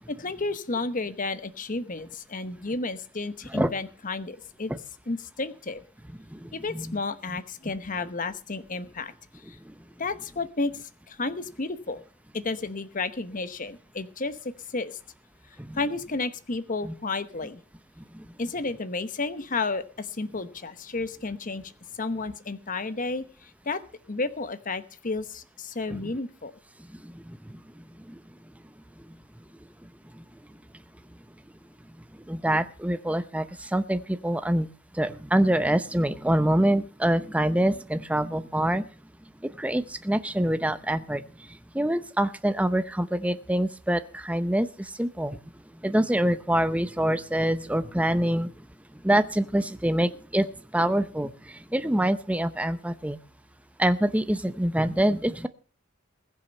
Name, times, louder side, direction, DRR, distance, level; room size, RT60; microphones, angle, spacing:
voice 1, 0.1-4.7 5.1-5.8 6.5-9.6 10.0-12.0 12.3-15.0 15.7-17.6 18.4-21.6 21.9-23.8 24.1-26.5, left 3 dB, 40° left, 12 dB, 1.0 m, -32 dB
voice 2, 32.3-33.5 33.7-34.7 35.0-38.8 39.6-41.2 41.7-45.4 45.8-48.5 49.0-50.5 50.7-51.3 51.7-53.2 53.8-55.5, right 1 dB, 5° right, 11 dB, 0.7 m, -25 dB
21.0 x 7.5 x 5.5 m, 0.38 s
head